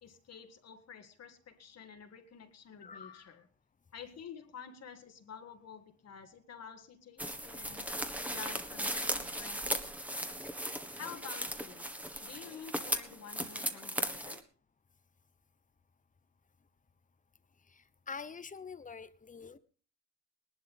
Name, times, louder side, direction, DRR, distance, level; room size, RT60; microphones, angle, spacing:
voice 1, 0.0-3.5 3.9-7.9 8.3-9.9 10.3-10.4 11.0-11.9 12.2-14.5, left 7 dB, 55° left, 6 dB, 1.9 m, -50 dB
voice 2, 2.8-3.2 18.1-19.6, left 5 dB, 25° left, 14 dB, 1.0 m, -45 dB
sound 1, 7.2-14.4, equal, 5° right, 1.5 m, -37 dB
19.5 x 11.5 x 3.6 m, 0.39 s
cardioid pair, 90°, 30 cm